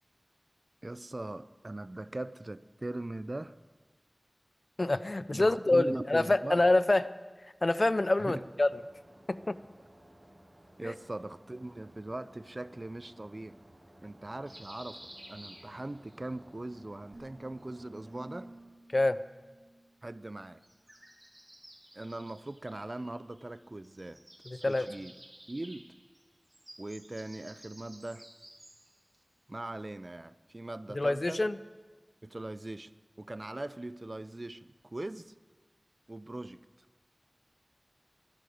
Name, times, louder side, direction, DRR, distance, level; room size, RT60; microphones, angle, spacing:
voice 1, 0.8-3.5 5.3-6.6 8.2-8.4 10.8-13.5 14.0-15.0 15.3-18.5 20.0-20.6 21.9-24.2 24.5-25.1 25.5-25.9 26.8-28.3 29.5-31.4 32.2-32.9 33.2-35.3 36.1-36.6, right 2 dB, 50° right, 15 dB, 0.5 m, -40 dB
voice 2, 4.8-7.1 7.6-8.7 9.3-9.6 10.8-10.9 18.9-19.2 24.5-24.9 30.9-31.6, left 2 dB, 60° left, 15 dB, 0.5 m, -26 dB
sound 1, 8.2-18.5, right 1 dB, 70° right, 3.6 m, -58 dB
sound 2, 14.5-16.2 17.6-18.7 20.6-23.6 23.8-29.0, right 1 dB, 30° right, 2.3 m, -54 dB
sound 3, 17.1-20.5, right 1 dB, 85° right, 2.9 m, -53 dB
22.5 x 10.5 x 4.9 m, 1.3 s
wide cardioid pair, 50°, 0 cm